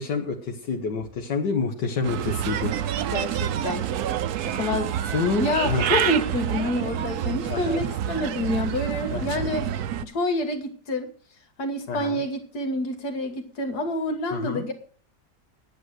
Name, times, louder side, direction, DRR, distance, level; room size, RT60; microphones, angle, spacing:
voice 1, 0.0-2.8 5.1-5.9 7.5-7.9 9.1-9.5 11.9-12.2 14.3-14.7, left 4 dB, 80° left, 2 dB, 1.9 m, -28 dB
Bird, 2.0-10.0, right 10 dB, 70° right, 1.1 m, -28 dB
voice 2, 3.1-3.9 4.5-5.0 5.4-9.7 10.0-11.1 11.6-14.7, left 1 dB, 65° left, 6 dB, 2.2 m, -27 dB
11.0 x 9.1 x 6.3 m, 0.43 s
omnidirectional pair, 1.8 m